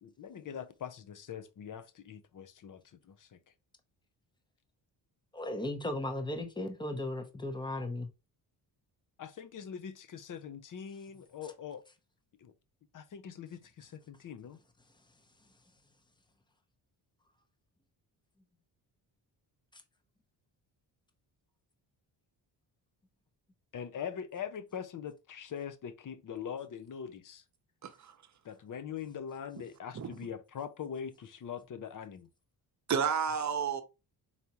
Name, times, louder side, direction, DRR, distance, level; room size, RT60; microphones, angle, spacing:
voice 1, 0.0-3.4 9.2-11.8 12.4-12.5 12.9-14.6 23.7-27.4 28.4-32.3, left 8 dB, 45° left, 0.6 m, -42 dB
voice 2, 5.3-8.1, left 1 dB, 10° left, 0.8 m, -36 dB
voice 3, 27.8-28.2 29.9-30.1 32.9-33.8, right 6 dB, 40° right, 0.8 m, -31 dB
4.1 x 3.5 x 2.9 m
cardioid pair, 90°, 45 cm